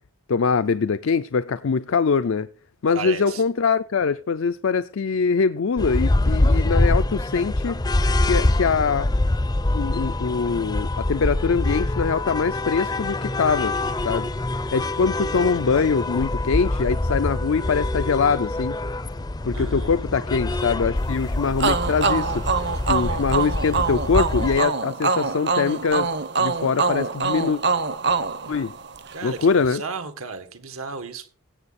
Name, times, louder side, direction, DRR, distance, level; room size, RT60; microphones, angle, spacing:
voice 1, 0.3-2.5 2.8-7.9 8.2-9.1 9.7-13.8 14.0-18.8 19.4-26.1 26.4-27.6 28.5-28.7 29.2-29.8, left 5 dB, 70° left, 0.5 m, -23 dB
voice 2, 2.9-3.4 19.5-20.2 29.1-31.3, right 4 dB, 85° right, 1.8 m, -34 dB
sound 1, 5.8-24.6, left 2 dB, 20° left, 0.5 m, -25 dB
sound 2, 21.6-29.2, right 4 dB, 55° right, 0.9 m, -24 dB
16.5 x 7.8 x 4.2 m
head